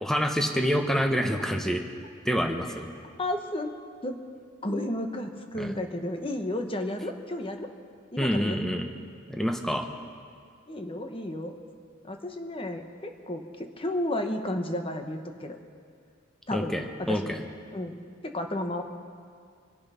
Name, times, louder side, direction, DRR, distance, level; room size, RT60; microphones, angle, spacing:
voice 1, 0.0-1.8 2.2-2.9 5.6-5.7 8.2-8.9 9.3-9.9 16.5-17.4, equal, ahead, 4 dB, 0.9 m, -27 dB
voice 2, 3.2-3.8 4.0-4.2 4.6-7.7 8.1-8.6 10.7-11.6 12.0-15.6 16.5-16.7 17.0-17.3 17.7-18.0 18.2-18.8, left 1 dB, 25° left, 5 dB, 1.1 m, -32 dB
25.0 x 8.6 x 5.7 m, 2.1 s
head